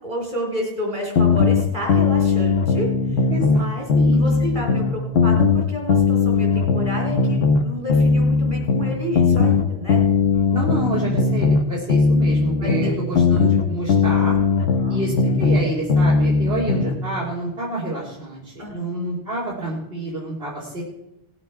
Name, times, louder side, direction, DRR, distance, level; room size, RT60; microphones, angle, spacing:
voice 1, 0.0-3.9 4.1-10.0 12.6-13.0 14.6-15.0 18.6-18.8, equal, 50° right, -1 dB, 4.0 m, -30 dB
sound 1, 1.2-3.6 3.9-7.6 7.9-11.6 11.9-15.6 15.9-17.0, left 4 dB, 85° left, 1.1 m, -18 dB
voice 2, 3.3-4.5 10.5-14.4 14.9-20.8, right 1 dB, 70° right, -6 dB, 2.7 m, -28 dB
18.5 x 8.1 x 4.6 m, 0.90 s
omnidirectional pair, 1.0 m